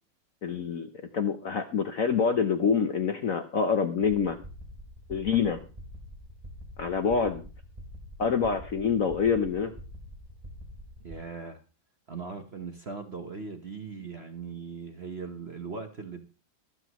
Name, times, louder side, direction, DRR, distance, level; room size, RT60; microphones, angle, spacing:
voice 1, 0.4-4.4 5.1-5.6 6.8-7.4 8.2-9.7, left 6 dB, 55° left, 1.0 m, -26 dB
sound 1, 4.0-11.2, equal, 20° right, 2.8 m, -45 dB
voice 2, 11.0-11.6 12.1-16.2, right 5 dB, 40° right, 1.0 m, -39 dB
23.5 x 7.9 x 3.0 m
omnidirectional pair, 2.2 m